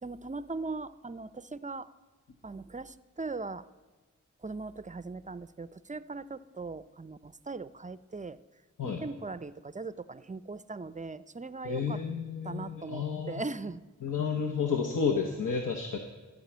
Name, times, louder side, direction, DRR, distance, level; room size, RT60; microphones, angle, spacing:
voice 1, 0.0-1.9 2.4-3.6 4.4-8.4 8.8-12.0 12.4-13.8, right 3 dB, 25° right, 16 dB, 0.4 m, -39 dB
voice 2, 11.6-13.4 14.0-16.0, left 6 dB, 80° left, 4 dB, 1.0 m, -31 dB
13.5 x 5.5 x 8.5 m, 1.4 s
wide cardioid pair, 60°, 32 cm